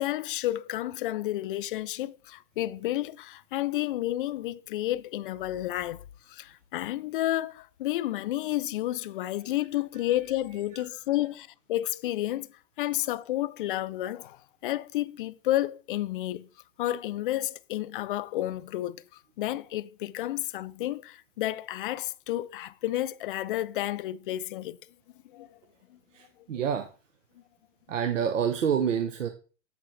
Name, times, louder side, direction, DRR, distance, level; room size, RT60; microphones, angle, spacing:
voice 1, 0.0-12.5 12.8-16.5 16.8-19.0 19.4-24.8 25.3-25.6, left 14 dB, 45° left, 0.4 m, -31 dB
voice 2, 26.1-26.9 27.9-29.3, right 8 dB, 85° right, 1.0 m, -28 dB
7.9 x 7.0 x 3.2 m
hypercardioid pair, 140°, 37 cm